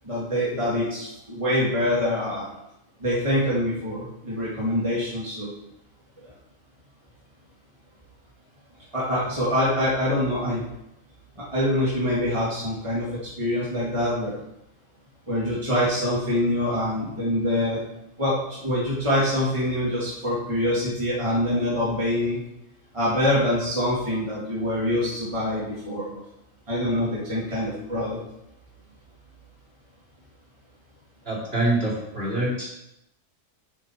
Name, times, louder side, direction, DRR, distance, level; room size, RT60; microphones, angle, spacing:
voice 1, 0.1-2.5 3.0-5.5 8.9-10.6 11.5-13.1 13.4-14.3 15.3-17.8 18.2-22.4 22.9-26.2 26.7-28.2, left 1 dB, 25° right, -7 dB, 2.3 m, -25 dB
voice 2, 31.2-32.7, right 1 dB, 45° right, -6 dB, 4.0 m, -25 dB
9.2 x 8.0 x 4.6 m, 0.84 s
omnidirectional pair, 1.4 m